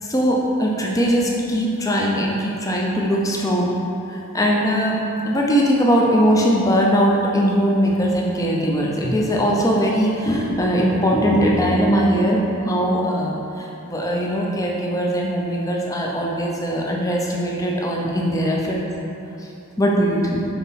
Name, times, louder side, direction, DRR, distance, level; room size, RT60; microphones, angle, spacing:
voice 1, 0.0-3.7 4.1-18.8 19.8-20.4, equal, 15° left, -2 dB, 0.6 m, -20 dB
5.8 x 4.1 x 4.1 m, 2.9 s
head